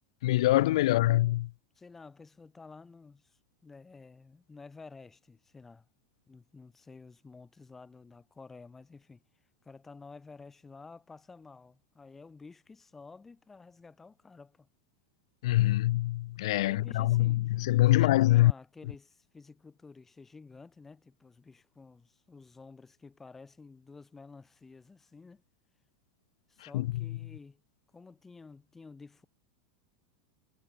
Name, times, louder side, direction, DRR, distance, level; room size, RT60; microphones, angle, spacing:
voice 1, 0.2-1.5 15.4-18.5 26.7-26.9, left 16 dB, 65° left, 0.8 m, -24 dB
voice 2, 0.8-1.4 1.8-5.9 6.3-9.2 9.6-14.7 16.6-25.4 26.5-27.6 27.9-29.3, left 4 dB, 10° left, 5.9 m, -52 dB
supercardioid pair, 175°, 3 cm